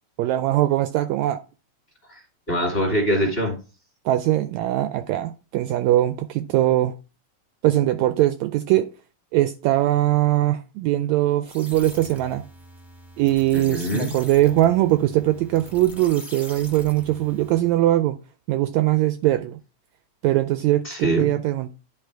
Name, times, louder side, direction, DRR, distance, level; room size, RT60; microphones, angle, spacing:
voice 1, 0.2-1.4 4.0-6.9 7.6-8.9 9.3-12.4 13.2-18.2 18.5-19.6 20.2-21.7, right 14 dB, 80° right, 1.7 m, -21 dB
voice 2, 2.5-3.6 13.5-14.1 20.8-21.3, equal, 25° left, 1.9 m, -23 dB
sound 1, 11.4-17.8, equal, ahead, 0.8 m, -43 dB
10.0 x 3.8 x 4.5 m
omnidirectional pair, 3.5 m